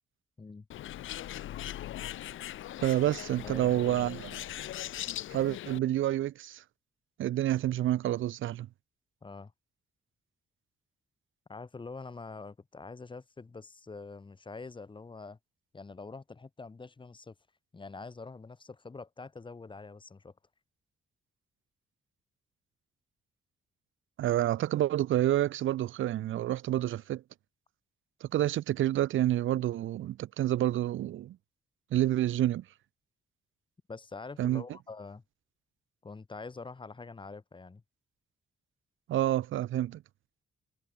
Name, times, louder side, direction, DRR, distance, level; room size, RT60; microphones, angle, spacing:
Bird, 0.7-5.8, left 13 dB, 80° left, 1.2 m, -40 dB
voice 1, 2.8-4.4 5.3-6.6 7.2-8.7 24.2-27.2 28.2-31.4 31.9-32.6 34.4-34.6 39.1-40.0, right 13 dB, 85° right, 1.0 m, -28 dB
voice 2, 3.4-4.1 9.2-9.5 11.5-15.4 15.7-17.4 17.7-20.3 33.9-35.2 36.0-37.8, left 4 dB, 25° left, 5.3 m, -45 dB
cardioid pair, 130°, 20 cm